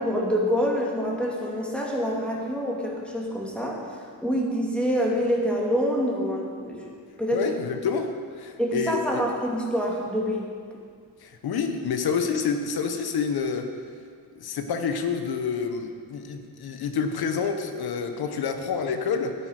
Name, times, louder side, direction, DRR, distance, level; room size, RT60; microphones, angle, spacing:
voice 1, 0.0-4.0 4.2-6.8 7.2-7.4 8.6-10.5, equal, 5° left, -3 dB, 2.4 m, -26 dB
voice 2, 7.3-9.2 11.2-13.7 14.3-19.3, left 6 dB, 75° left, 6 dB, 1.2 m, -28 dB
12.0 x 10.0 x 5.0 m, 2.1 s
cardioid pair, 95°, 38 cm